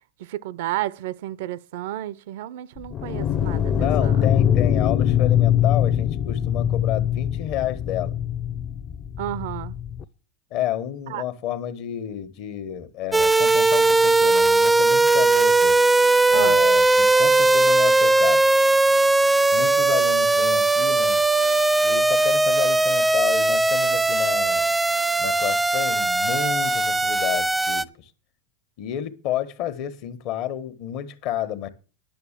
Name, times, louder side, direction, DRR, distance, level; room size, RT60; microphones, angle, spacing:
voice 1, 0.2-4.2 9.2-9.8 11.1-11.2 16.3-16.6, right 14 dB, 70° right, 0.5 m, -32 dB
sound 1, 2.8-10.0, left 9 dB, 35° left, 0.7 m, -22 dB
voice 2, 3.7-8.1 10.5-15.8 16.3-18.4 19.5-21.2 21.8-24.7 25.2-28.1 28.8-31.7, left 11 dB, 55° left, 1.3 m, -30 dB
sound 2, 13.1-27.8, right 2 dB, 10° right, 0.5 m, -19 dB
10.5 x 6.4 x 7.4 m
hypercardioid pair, 110°, 0 cm